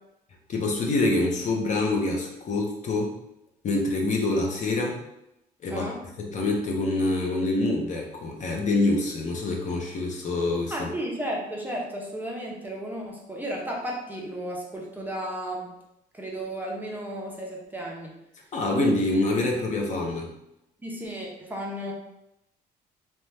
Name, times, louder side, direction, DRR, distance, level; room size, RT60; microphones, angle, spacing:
voice 1, 0.5-3.1 3.6-5.0 5.6-5.9 6.2-10.9 18.5-20.3, left 2 dB, 45° left, 1 dB, 0.6 m, -26 dB
voice 2, 5.7-6.0 10.7-15.7 16.1-18.2 20.8-21.9, right 1 dB, 10° right, -2 dB, 0.5 m, -34 dB
2.7 x 2.1 x 3.2 m, 0.86 s
cardioid pair, 110°, 17 cm